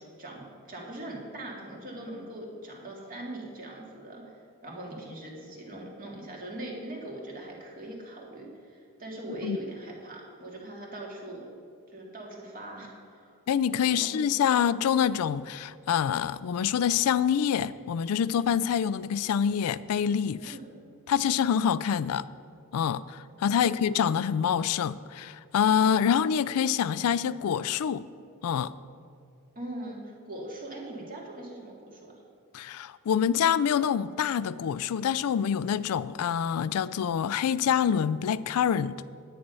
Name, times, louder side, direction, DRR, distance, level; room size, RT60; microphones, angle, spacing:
voice 1, 0.2-11.5 11.9-13.3 14.0-14.2 20.4-20.7 23.6-23.7 29.6-32.2, right 1 dB, 40° right, -2 dB, 2.1 m, -41 dB
voice 2, 13.5-20.6 21.1-22.2 22.7-28.0 28.4-28.7 32.5-39.0, left 8 dB, 80° left, 16 dB, 0.3 m, -26 dB
9.8 x 9.3 x 5.5 m, 2.4 s
head